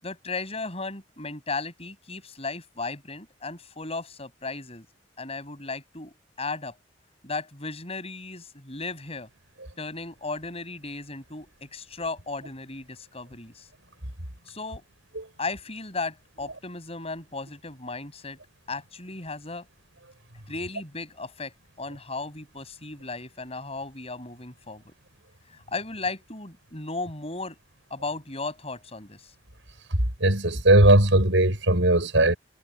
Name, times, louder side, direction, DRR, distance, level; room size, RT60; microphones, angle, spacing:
voice 1, 0.0-4.9 5.2-6.8 7.2-9.3 9.8-13.7 14.5-14.9 15.4-18.4 18.7-19.6 20.5-24.9 25.5-27.6 27.9-29.3, left 3 dB, 35° left, 7.6 m, -35 dB
voice 2, 30.2-32.4, right 1 dB, 80° right, 5.9 m, -18 dB
head